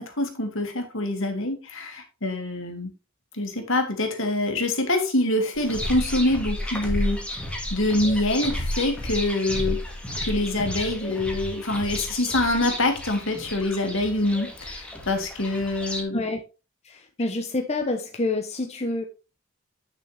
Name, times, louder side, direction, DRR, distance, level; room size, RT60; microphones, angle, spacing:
voice 1, 0.0-2.9 3.3-7.2 7.7-9.8 10.2-16.2, left 1 dB, 65° left, 2.3 m, -25 dB
sound 1, 5.6-16.0, left 1 dB, 5° left, 2.0 m, -32 dB
voice 2, 16.1-16.4 16.8-19.0, left 2 dB, 30° left, 1.0 m, -27 dB
10.0 x 6.2 x 3.4 m
head